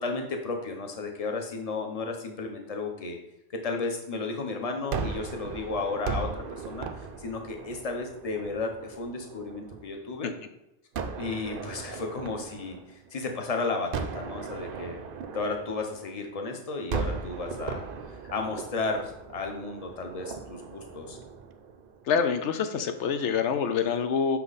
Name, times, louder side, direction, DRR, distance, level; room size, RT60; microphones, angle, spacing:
voice 1, 0.0-3.2 3.6-10.3 11.2-15.0 15.3-17.8 18.3-21.2, left 3 dB, 35° left, 3 dB, 1.0 m, -33 dB
Gunshot gunfire, 4.9-10.0 10.9-13.4 13.9-16.4 16.9-22.1, right 5 dB, 55° right, 0.7 m, -37 dB
voice 2, 22.0-24.4, left 6 dB, 80° left, 8 dB, 1.0 m, -26 dB
6.2 x 5.8 x 4.1 m, 0.90 s
omnidirectional pair, 1.2 m